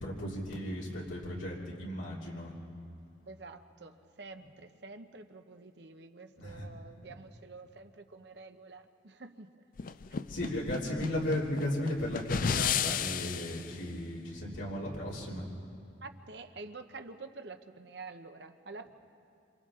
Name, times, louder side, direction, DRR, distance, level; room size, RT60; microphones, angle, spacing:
voice 1, 0.0-2.5 6.4-6.7 10.3-15.4, left 1 dB, 90° left, -5 dB, 3.1 m, -35 dB
voice 2, 3.3-9.6 16.0-18.9, right 3 dB, 60° right, 7 dB, 0.9 m, -48 dB
sound 1, 9.8-13.7, left 7 dB, 45° left, 0.4 m, -33 dB
27.5 x 27.0 x 3.7 m, 2.5 s
head